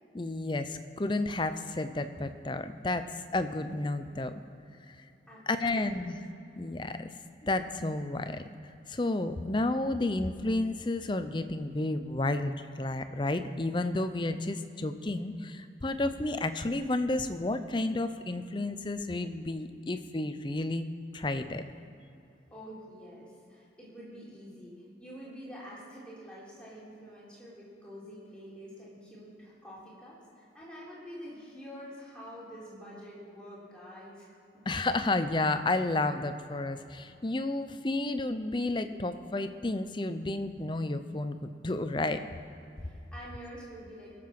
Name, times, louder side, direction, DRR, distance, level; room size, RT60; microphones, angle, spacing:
voice 1, 0.1-3.1 3.3-4.3 4.9-5.0 5.5-6.2 6.6-7.1 7.4-8.4 8.9-20.9 21.1-21.6 34.7-42.2, left 2 dB, 25° left, 10 dB, 0.6 m, -31 dB
voice 2, 5.3-6.1 22.5-34.7 42.8-44.1, equal, 5° left, -8 dB, 3.7 m, -47 dB
21.5 x 7.7 x 5.9 m, 2.7 s
head